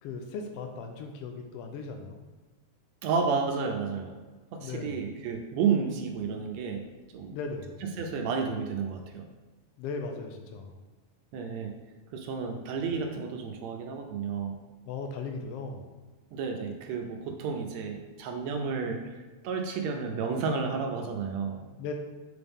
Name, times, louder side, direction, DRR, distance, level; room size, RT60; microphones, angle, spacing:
voice 1, 0.0-2.2 4.6-5.0 7.3-7.8 9.8-10.8 14.8-15.9 21.8-21.9, left 4 dB, 85° left, 4 dB, 1.3 m, -37 dB
voice 2, 3.0-4.2 4.5-6.8 7.1-7.4 7.8-9.3 11.3-11.7 12.1-14.6 16.3-21.7, right 5 dB, 75° right, 3 dB, 1.8 m, -31 dB
6.9 x 4.2 x 3.5 m, 1.3 s
omnidirectional pair, 3.3 m